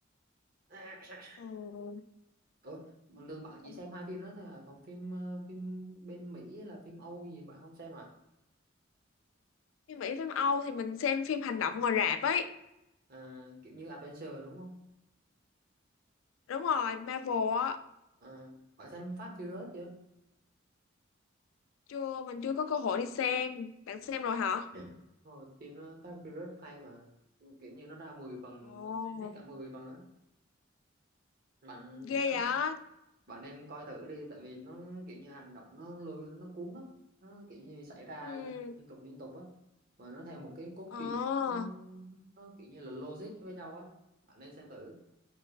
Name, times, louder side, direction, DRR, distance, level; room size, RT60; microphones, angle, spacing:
voice 1, 0.7-1.4 2.6-8.1 13.1-14.8 18.2-19.9 24.7-24.9 25.2-27.1 27.4-30.0 31.6-32.5 33.3-36.9 37.2-39.5 40.0-41.1 41.5-43.9 44.3-45.0, right 1 dB, 50° right, 0 dB, 0.9 m, -46 dB
voice 2, 1.4-2.0 9.9-12.5 16.5-17.8 21.9-24.7 28.7-29.3 32.0-32.8 38.2-38.7 40.9-41.7, left 6 dB, 85° left, 11 dB, 0.3 m, -32 dB
3.3 x 2.9 x 2.4 m, 0.87 s
head